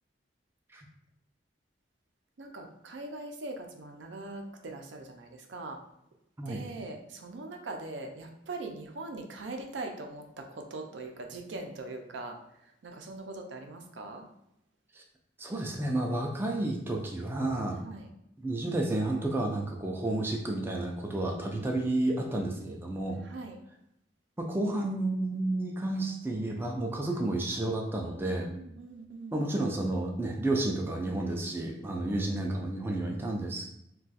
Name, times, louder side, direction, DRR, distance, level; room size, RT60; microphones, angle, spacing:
voice 1, 2.4-5.8 6.5-12.3 12.8-14.2 17.8-18.1 21.1-21.8 23.2-23.6 28.0-29.4 32.1-32.2, right 2 dB, 75° right, 3 dB, 0.5 m, -42 dB
voice 2, 15.4-17.8 18.4-23.2 24.4-28.5 29.3-33.8, right 2 dB, 10° right, 0 dB, 0.3 m, -31 dB
2.4 x 2.3 x 3.9 m, 0.81 s
head